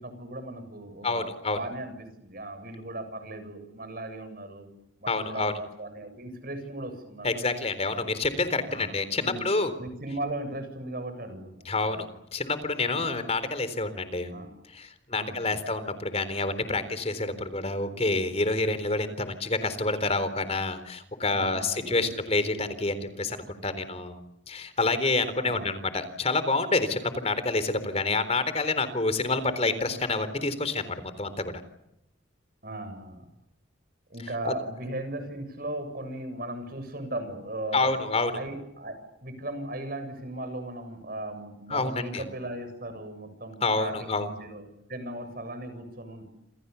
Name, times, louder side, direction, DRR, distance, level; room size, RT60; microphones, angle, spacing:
voice 1, 0.0-4.7 5.0-7.3 8.6-9.4 9.8-12.0 12.9-13.2 14.3-14.5 15.1-15.6 21.3-22.1 25.4-25.7 32.6-33.3 34.1-38.9 39.2-46.3, right 1 dB, 50° right, 9 dB, 7.5 m, -37 dB
voice 2, 1.0-1.6 5.1-5.5 7.2-9.7 11.7-12.1 12.3-14.3 14.7-24.2 24.5-31.5 34.4-34.5 37.7-38.3 41.7-42.2 43.6-44.3, left 3 dB, 35° left, 12 dB, 3.8 m, -28 dB
28.5 x 27.5 x 7.0 m, 0.83 s
head